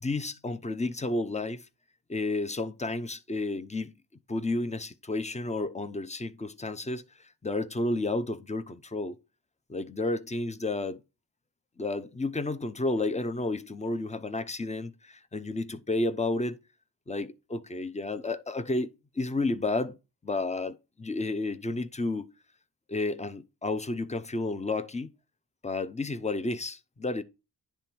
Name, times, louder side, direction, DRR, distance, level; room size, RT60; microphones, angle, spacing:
voice 1, 0.0-1.7 2.1-3.9 4.3-7.0 7.4-9.2 9.7-11.0 11.8-16.6 17.1-18.9 19.1-20.0 20.2-22.3 22.9-25.1 25.6-27.2, left 2 dB, 15° left, 0.6 m, -31 dB
10.0 x 3.4 x 4.4 m
cardioid pair, 55°, 44 cm